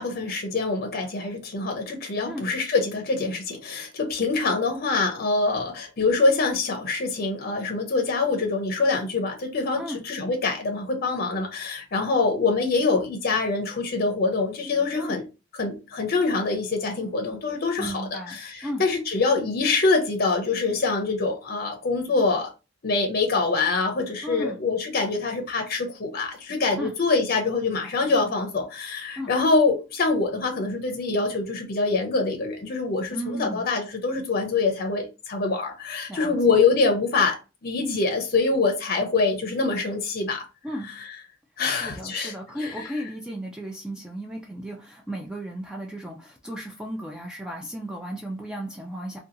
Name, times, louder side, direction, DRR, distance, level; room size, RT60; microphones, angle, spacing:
voice 1, 0.0-15.2 15.6-22.5 22.8-37.4 37.6-40.4 41.6-42.9, left 3 dB, 50° left, 0.6 m, -25 dB
voice 2, 17.8-18.9 24.2-24.6 26.8-26.9 29.2-29.3 33.1-33.7 36.1-36.6 40.6-40.9 41.6-49.2, equal, 5° right, 0.3 m, -35 dB
2.8 x 2.2 x 2.5 m
head